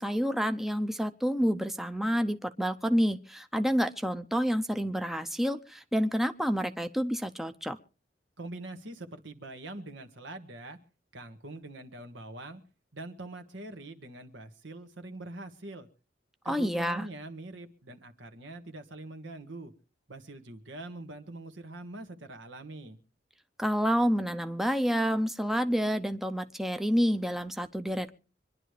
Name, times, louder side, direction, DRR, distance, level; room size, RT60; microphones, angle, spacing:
voice 1, 0.0-7.8 16.4-17.1 23.6-28.2, equal, ahead, 8 dB, 0.6 m, -28 dB
voice 2, 8.4-10.8 11.1-12.6 12.9-15.9 16.4-19.7 20.1-23.0, right 2 dB, 80° right, 7 dB, 1.7 m, -43 dB
25.5 x 11.0 x 3.3 m, 0.36 s
head